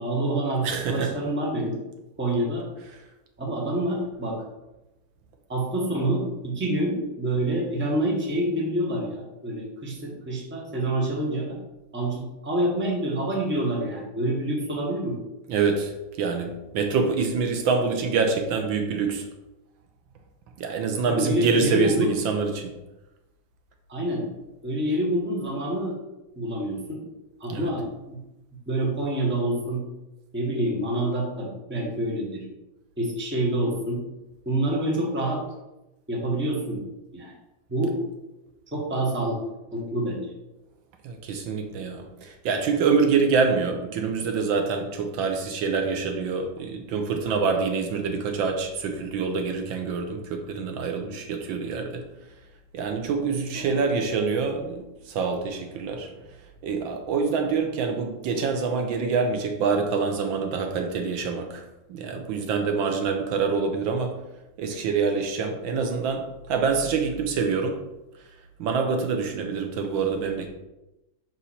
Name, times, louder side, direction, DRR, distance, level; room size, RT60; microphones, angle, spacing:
voice 1, 0.0-1.8 2.2-2.7 3.4-4.4 5.5-11.6 11.9-15.2 21.1-22.1 23.9-24.3 24.6-26.0 26.3-27.0 27.4-28.2 28.7-29.8 30.3-32.4 33.0-34.0 34.4-35.4 36.1-36.8 37.1-37.3 37.7-38.0 38.7-39.4 39.7-40.3 53.5-53.8, right 1 dB, 10° right, -3 dB, 0.9 m, -27 dB
voice 2, 0.6-1.1 15.5-19.3 20.6-22.7 27.5-27.7 41.0-52.1 52.7-56.2 56.6-61.6 61.9-64.2 64.6-67.8 68.6-70.5, right 5 dB, 75° right, 5 dB, 1.4 m, -26 dB
6.2 x 4.0 x 4.2 m, 0.99 s
omnidirectional pair, 2.2 m